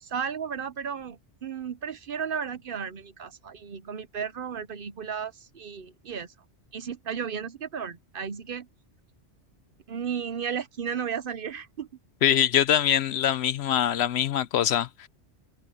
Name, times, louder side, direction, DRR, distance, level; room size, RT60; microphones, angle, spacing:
voice 1, 0.0-6.3 6.7-8.7 9.9-11.9, right 7 dB, 55° right, 0.9 m, -34 dB
voice 2, 12.2-15.1, left 10 dB, 70° left, 0.8 m, -23 dB
omnidirectional pair, 1.2 m